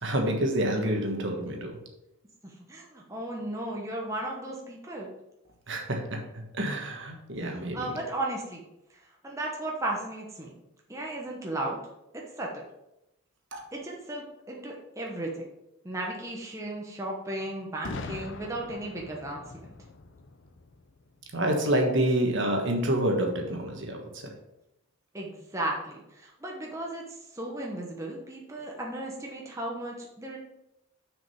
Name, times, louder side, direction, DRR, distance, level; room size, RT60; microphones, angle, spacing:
voice 1, 0.0-1.8 5.7-6.2 6.5-7.9 13.5-13.6 21.3-24.3, right 1 dB, 55° right, 2 dB, 1.4 m, -28 dB
voice 2, 2.7-5.1 7.7-8.6 9.2-10.6 10.9-11.8 12.1-12.6 13.7-15.4 15.8-19.4 25.1-27.0 27.3-30.4, right 1 dB, 15° right, -2 dB, 1.1 m, -35 dB
Boom, 17.8-21.7, left 3 dB, 55° left, 0.6 m, -42 dB
6.3 x 5.1 x 6.9 m, 0.88 s
head